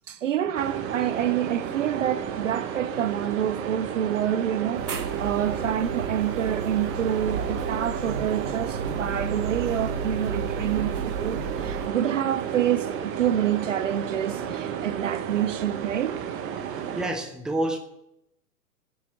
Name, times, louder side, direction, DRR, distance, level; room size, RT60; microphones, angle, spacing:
voice 1, 0.1-16.2, right 10 dB, 50° right, 0.7 m, -27 dB
sound 1, 0.5-17.1, right 8 dB, 25° right, 1.2 m, -32 dB
sound 2, 4.8-11.9, right 4 dB, 65° right, 1.6 m, -33 dB
voice 2, 16.6-17.8, right 1 dB, ahead, 0.8 m, -29 dB
9.4 x 8.1 x 9.4 m
figure-of-eight pair, 105°, 48 cm